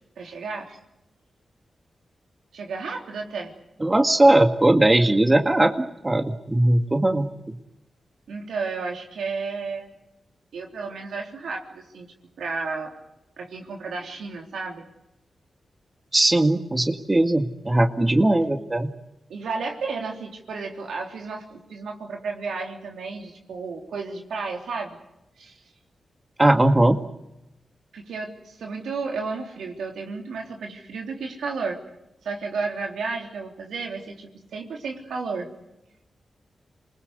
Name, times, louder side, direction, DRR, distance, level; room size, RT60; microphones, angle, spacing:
voice 1, 0.2-0.8 2.5-3.5 8.3-9.9 10.5-12.1 12.4-12.9 13.4-14.8 19.3-25.0 25.4-25.6 27.9-31.8 32.2-35.5, right 4 dB, 85° right, 1 dB, 3.5 m, -32 dB
voice 2, 3.8-5.7 6.0-7.3 16.1-18.9 26.4-27.0, right 1 dB, 25° right, 5 dB, 2.1 m, -19 dB
27.5 x 20.5 x 8.2 m, 0.92 s
cardioid pair, 50°, 0 cm